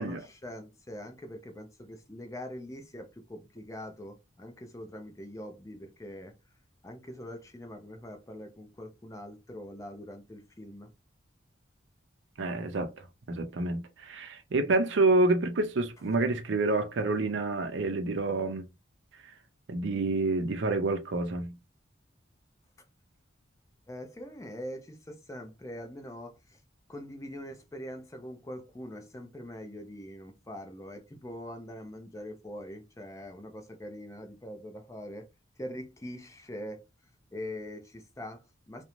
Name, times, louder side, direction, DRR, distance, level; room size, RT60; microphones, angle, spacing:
voice 1, 0.0-6.3 6.8-10.9 23.9-26.6 26.9-35.3 35.6-36.9 37.3-38.8, equal, 15° left, 0.4 m, -43 dB
voice 2, 12.4-12.9 13.3-18.6 19.7-21.5, right 2 dB, 65° right, 0.5 m, -28 dB
2.5 x 2.1 x 2.9 m
head